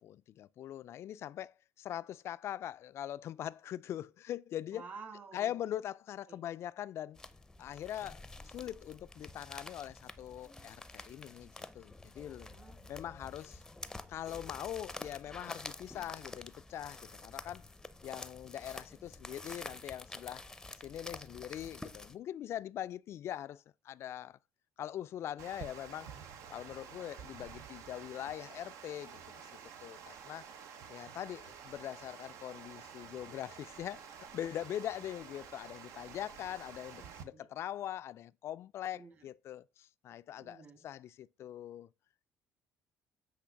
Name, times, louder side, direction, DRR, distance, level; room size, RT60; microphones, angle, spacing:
voice 1, 0.0-4.8 5.3-7.2 7.6-12.5 12.9-13.6 14.1-17.7 18.0-20.4 20.8-24.4 24.8-26.1 26.5-29.5 29.8-30.5 30.9-41.9, left 11 dB, 55° left, 0.3 m, -42 dB
voice 2, 4.7-5.6 6.3-6.4 12.5-13.2 37.0-37.5 38.9-39.1 40.4-40.9, right 5 dB, 40° right, 2.2 m, -52 dB
sound 1, 7.2-22.2, left 2 dB, 10° left, 0.6 m, -48 dB
Water, 25.4-37.2, right 7 dB, 75° right, 0.9 m, -50 dB
8.3 x 3.3 x 5.8 m
cardioid pair, 115°, 5 cm